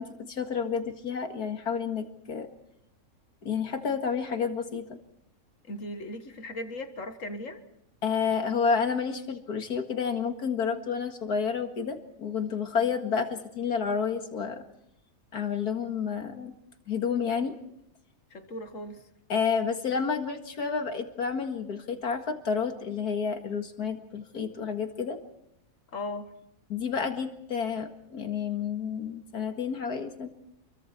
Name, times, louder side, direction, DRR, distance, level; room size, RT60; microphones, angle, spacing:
voice 1, 0.0-2.5 3.4-5.0 8.0-14.6 15.3-16.5 16.9-17.5 19.3-25.2 26.7-30.3, left 6 dB, 85° left, 2.4 m, -30 dB
voice 2, 5.6-7.6 18.3-19.1 25.9-26.4, left 1 dB, 55° left, 2.0 m, -38 dB
28.5 x 23.0 x 4.4 m
omnidirectional pair, 1.6 m